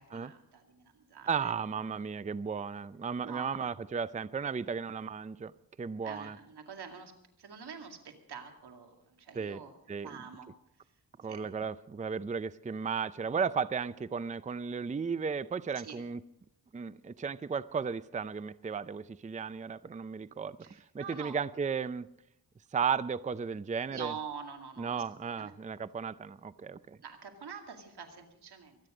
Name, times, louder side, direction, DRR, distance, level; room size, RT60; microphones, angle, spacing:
voice 1, 0.0-1.5 3.2-3.6 6.0-7.1 7.4-9.7 10.0-10.5 11.2-11.4 15.8-16.0 20.6-21.4 23.9-25.0 25.4-25.5 27.0-28.8, right 6 dB, 90° right, 4 dB, 2.3 m, -45 dB
voice 2, 1.3-5.5 5.8-6.4 9.3-9.6 9.9-10.1 11.2-16.2 16.7-20.6 20.9-22.1 22.7-24.1 24.8-27.0, right 6 dB, 20° right, 16 dB, 0.5 m, -35 dB
24.0 x 9.7 x 5.0 m, 0.78 s
cardioid pair, 75°, 39 cm